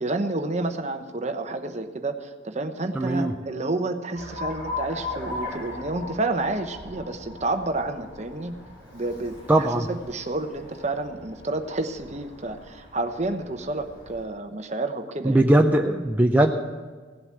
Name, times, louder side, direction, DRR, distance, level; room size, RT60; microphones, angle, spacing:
voice 1, 0.0-8.5 8.9-15.4, right 2 dB, 35° right, 7 dB, 1.0 m, -30 dB
voice 2, 2.9-3.3 9.5-9.9 15.3-16.5, right 1 dB, 10° right, 2 dB, 0.5 m, -19 dB
Alarm, 4.1-14.2, left 2 dB, 55° left, 4.9 m, -39 dB
17.0 x 7.9 x 7.2 m, 1.5 s
head